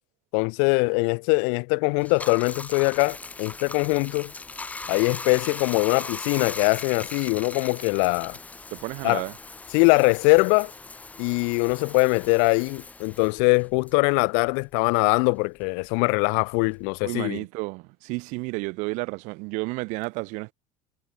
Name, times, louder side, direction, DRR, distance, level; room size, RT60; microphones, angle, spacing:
voice 1, 0.3-4.3 4.9-8.4 9.0-9.2 9.7-10.7 11.2-17.4, left 40 dB or more, 80° left, 1.0 m, -22 dB
Bathtub (filling or washing), 2.0-14.8 15.1-17.0, left 3 dB, 10° left, 2.5 m, -39 dB
voice 2, 8.7-9.3 17.0-20.5, right 27 dB, 65° right, 2.2 m, -31 dB
cardioid pair, 165°, 14 cm